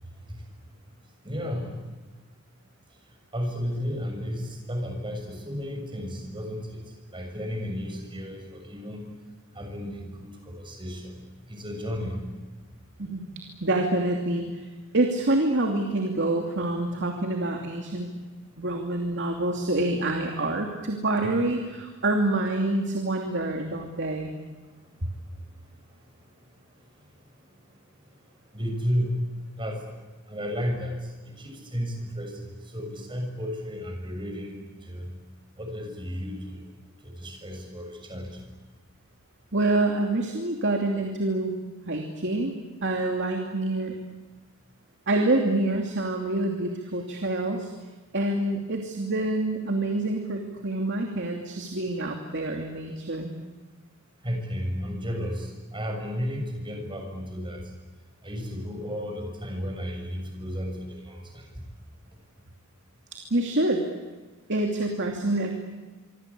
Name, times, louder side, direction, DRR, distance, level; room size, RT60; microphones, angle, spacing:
voice 1, 1.2-1.7 3.3-6.8 7.1-9.1 9.5-11.2 11.5-12.3 28.5-29.2 29.6-29.8 30.3-35.1 35.6-36.6 37.0-38.4 54.2-57.6 58.2-61.4, equal, 20° right, 3 dB, 6.8 m, -33 dB
voice 2, 13.6-14.6 14.9-18.1 18.6-24.3 39.5-41.5 41.8-42.6 42.8-43.9 45.1-47.7 48.1-53.3 63.1-63.8 64.5-65.5, right 2 dB, 55° right, 2 dB, 2.8 m, -26 dB
25.5 x 25.0 x 8.5 m, 1.3 s
head